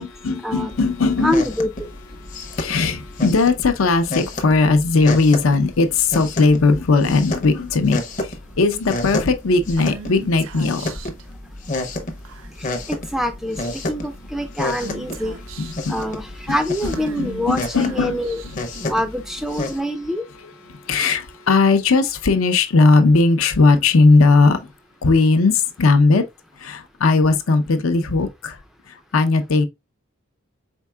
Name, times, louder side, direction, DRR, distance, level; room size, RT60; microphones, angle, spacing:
voice 1, 0.0-1.4 2.2-10.8 15.6-16.0 16.5-16.6 16.8-18.6 20.7-24.7 25.0-26.2 26.6-28.6 29.1-29.6, left 3 dB, 85° left, 0.6 m, -18 dB
sound 1, 0.7-19.8, left 2 dB, 40° left, 0.6 m, -31 dB
voice 2, 1.2-1.9 12.9-13.6 13.9-15.4 15.9-18.4 18.9-20.3, equal, ahead, 0.3 m, -25 dB
Female speech woman speaking / Whispering, 9.8-11.2 12.2-12.7 13.1-13.2 13.5-14.1 14.8-15.9 16.8-18.8, right 6 dB, 80° right, 0.4 m, -38 dB
4.5 x 3.6 x 2.2 m
head